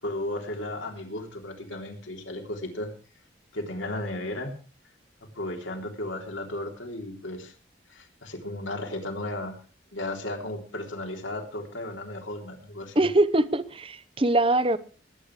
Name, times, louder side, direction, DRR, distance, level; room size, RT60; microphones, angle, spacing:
voice 1, 0.0-2.9 3.5-4.6 5.2-7.5 7.9-9.6 9.9-13.1, left 1 dB, 85° left, 3 dB, 3.6 m, -34 dB
voice 2, 13.0-14.8, right 2 dB, 30° right, 16 dB, 0.8 m, -23 dB
19.5 x 9.9 x 4.8 m, 0.37 s
head